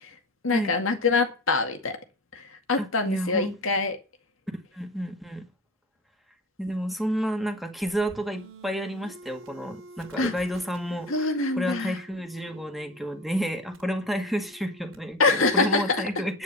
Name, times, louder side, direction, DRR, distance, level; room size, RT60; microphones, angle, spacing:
voice 1, 0.4-2.0 2.3-2.4 2.7-4.0 10.2-10.3 11.1-12.0 15.2-15.8, left 3 dB, 85° left, 2.1 m, -24 dB
voice 2, 2.8-3.6 4.7-5.5 6.6-16.4, equal, ahead, 1.9 m, -30 dB
sound 1, 7.8-15.0, right 2 dB, 80° right, 2.7 m, -48 dB
9.6 x 9.4 x 6.9 m
head